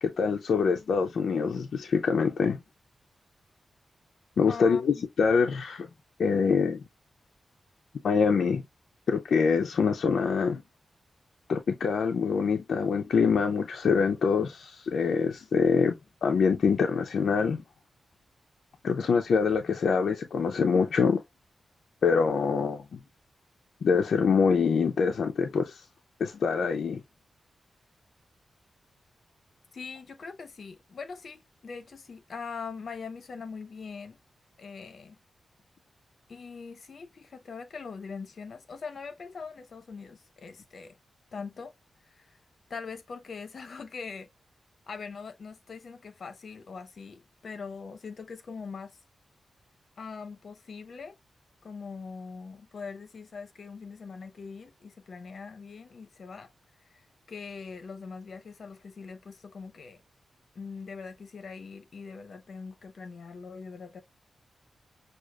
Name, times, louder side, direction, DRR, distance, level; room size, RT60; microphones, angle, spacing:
voice 1, 0.0-2.6 4.4-5.9 6.2-6.8 8.0-8.6 9.1-10.6 11.5-16.0 16.2-17.6 18.8-21.2 22.0-23.0 23.8-25.8 26.2-27.0, left 5 dB, 75° left, 0.5 m, -25 dB
voice 2, 4.5-5.0 29.7-34.2 34.6-35.2 36.3-40.9 41.3-41.7 42.1-42.4 42.7-44.3 44.9-49.0 50.0-51.2 51.6-56.5 57.3-60.0 60.5-64.0, left 5 dB, 55° left, 0.8 m, -42 dB
6.2 x 2.4 x 2.3 m
wide cardioid pair, 140°, 0 cm